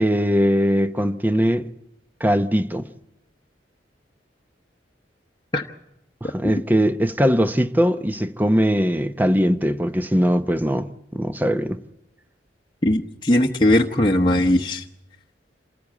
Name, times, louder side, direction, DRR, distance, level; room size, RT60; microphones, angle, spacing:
voice 1, 0.0-1.7 2.2-2.9 6.2-11.8, equal, 10° right, 0.8 m, -20 dB
voice 2, 12.8-14.8, left 1 dB, 25° left, 0.9 m, -19 dB
27.0 x 14.0 x 8.4 m
head